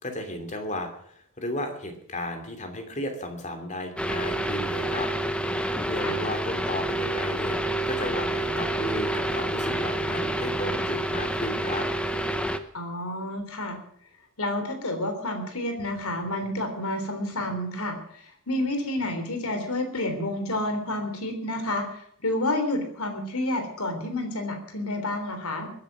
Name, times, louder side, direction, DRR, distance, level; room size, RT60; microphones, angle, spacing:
voice 1, 0.0-5.1 5.5-7.6 7.9-11.9, left 1 dB, 30° left, 6 dB, 2.8 m, -34 dB
sound 1, 4.0-12.6, right 1 dB, 5° left, 0.8 m, -28 dB
voice 2, 12.7-13.8 14.4-25.7, left 1 dB, 80° left, 6 dB, 3.5 m, -30 dB
21.5 x 10.5 x 6.1 m, 0.64 s
head